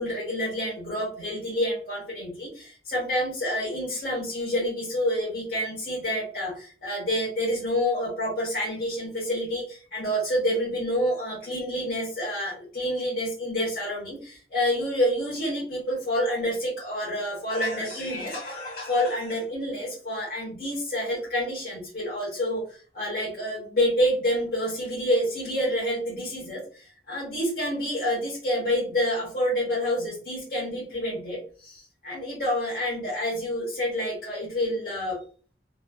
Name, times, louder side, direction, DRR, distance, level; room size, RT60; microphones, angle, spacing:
voice 1, 0.0-35.2, equal, 55° left, -7 dB, 1.0 m, -28 dB
3.0 x 2.5 x 2.2 m, 0.42 s
head